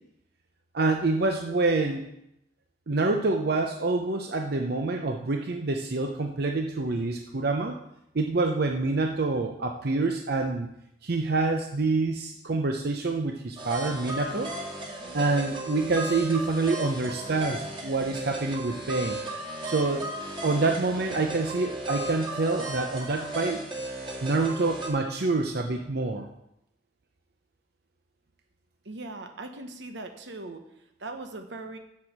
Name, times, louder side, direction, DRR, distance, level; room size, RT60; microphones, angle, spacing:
voice 1, 0.7-2.0 2.9-7.8 8.1-10.7 11.0-14.5 15.1-19.1 19.6-20.1 20.4-23.6 24.2-26.3, right 3 dB, 60° right, 3 dB, 0.7 m, -27 dB
sound 1, 13.6-24.9, right 1 dB, 30° right, 2.0 m, -36 dB
voice 2, 28.8-30.6 31.0-31.8, right 2 dB, 80° right, 6 dB, 1.2 m, -39 dB
7.6 x 6.3 x 7.3 m, 0.81 s
head